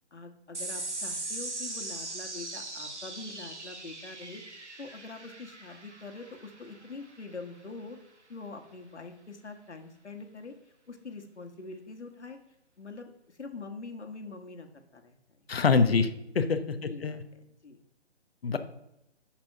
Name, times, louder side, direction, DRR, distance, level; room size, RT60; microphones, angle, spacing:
voice 1, 0.1-8.0 8.3-10.5 10.9-12.4 12.8-14.7 14.9-15.2 15.7-15.9 16.7-17.2 17.6-17.8, left 3 dB, 80° left, 6 dB, 1.9 m, -44 dB
sound 1, 0.5-7.3, right 2 dB, 85° right, 2.2 m, -40 dB
voice 2, 15.5-16.1 16.3-17.2 18.4-18.6, left 4 dB, 60° left, 10 dB, 1.1 m, -25 dB
10.0 x 6.0 x 5.8 m, 0.84 s
figure-of-eight pair, 150°, 34 cm